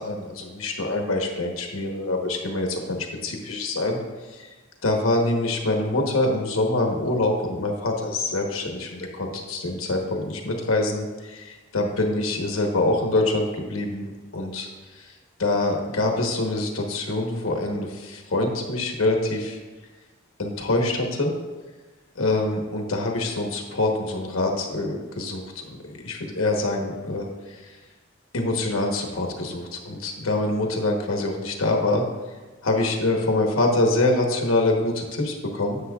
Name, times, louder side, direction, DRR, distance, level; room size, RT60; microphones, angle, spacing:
voice 1, 0.0-4.0 4.3-4.5 4.8-15.1 15.4-19.6 20.4-21.3 22.1-27.8 28.3-32.0 32.6-35.8, left 2 dB, 80° left, 2 dB, 1.1 m, -25 dB
10.0 x 7.5 x 2.4 m, 1.3 s
head